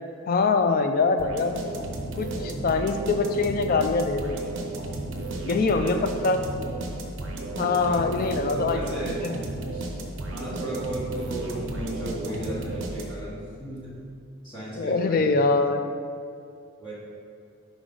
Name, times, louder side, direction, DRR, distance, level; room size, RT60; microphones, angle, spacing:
voice 1, 0.3-1.5 2.1-4.6 5.4-6.4 7.6-9.3 14.7-15.8, left 4 dB, 40° left, 7 dB, 0.3 m, -24 dB
sound 1, 1.2-13.4, right 2 dB, 55° right, 0.7 m, -33 dB
voice 2, 7.7-9.3 9.7-9.9 10.3-13.9 14.4-15.4 16.8-16.9, right 1 dB, 20° left, -9 dB, 1.3 m, -35 dB
5.1 x 4.9 x 3.9 m, 2.3 s
head